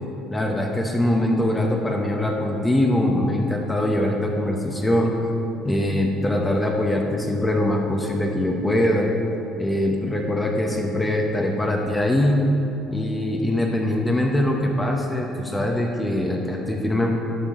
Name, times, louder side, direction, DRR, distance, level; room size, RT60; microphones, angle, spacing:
voice 1, 0.3-5.1 5.6-9.1 9.6-12.5 12.9-17.2, left 1 dB, 15° left, 1 dB, 0.9 m, -22 dB
11.5 x 5.1 x 3.7 m, 2.8 s
supercardioid pair, 85°, 0 cm